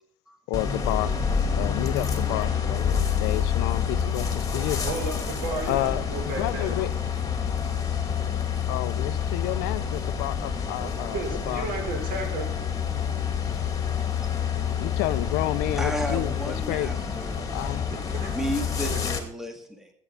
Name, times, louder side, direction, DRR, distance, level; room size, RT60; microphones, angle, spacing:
voice 1, 0.5-1.1 1.5-4.8 5.7-6.9 8.7-11.7 14.5-17.0 17.5-17.9, left 16 dB, 75° left, 0.8 m, -30 dB
sound 1, 0.5-19.2, left 7 dB, 20° left, 2.3 m, -28 dB
voice 2, 4.8-6.8 10.8-12.5 17.9-18.3 18.8-19.0, right 2 dB, 60° right, 5.5 m, -34 dB
voice 3, 15.8-19.9, equal, ahead, 2.0 m, -34 dB
15.0 x 8.2 x 5.9 m
cardioid pair, 125°, 17 cm